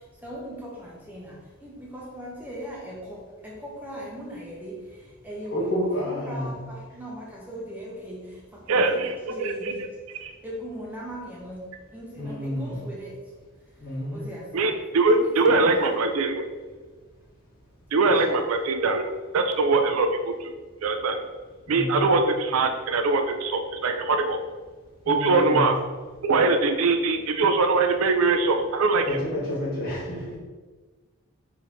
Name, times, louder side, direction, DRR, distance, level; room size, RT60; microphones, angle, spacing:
voice 1, 0.2-9.0 9.3-9.9 10.4-11.6 11.9-13.2 14.1-14.7 15.2-15.7 18.1-18.3 21.7-21.8 29.3-29.5, equal, 10° right, -5 dB, 0.6 m, -39 dB
voice 2, 5.5-6.5 12.2-12.8 13.8-14.2 21.7-22.1 25.1-25.7 29.1-30.2, left 1 dB, 40° left, -7 dB, 1.4 m, -29 dB
voice 3, 8.7-9.7 10.2-10.3 14.5-16.5 17.9-20.5 20.8-21.2 21.7-24.4 25.1-25.8 26.2-29.2, right 3 dB, 80° right, 6 dB, 0.4 m, -22 dB
4.4 x 2.8 x 3.5 m, 1.4 s
head